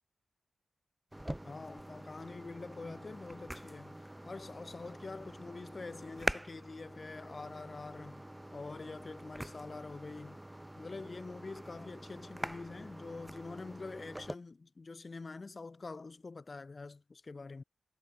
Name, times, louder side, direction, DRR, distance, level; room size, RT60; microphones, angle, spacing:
sound 1, 1.1-14.3, right 1 dB, 10° right, 2.3 m, -44 dB
voice 1, 1.4-8.2 8.5-10.4 10.8-17.6, left 3 dB, 45° left, 2.4 m, -46 dB
supercardioid pair, 45°, 0 cm